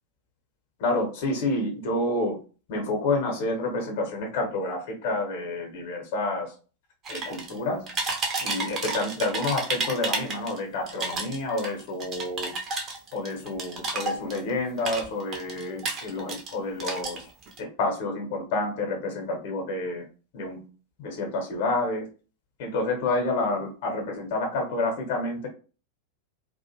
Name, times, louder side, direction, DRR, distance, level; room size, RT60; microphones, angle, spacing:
voice 1, 0.8-2.4 2.7-6.5 7.1-7.9 8.4-12.5 13.1-17.2 17.6-20.0 20.3-20.7 21.0-22.1 22.6-25.5, left 2 dB, 50° left, 2 dB, 0.8 m, -29 dB
sound 1, 7.0-7.6 7.9-10.6 10.9-14.5 14.8-16.5 16.8-17.6, right 3 dB, 30° right, 0.6 m, -31 dB
2.4 x 2.1 x 2.9 m, 0.36 s
figure-of-eight pair, 90°, 0 cm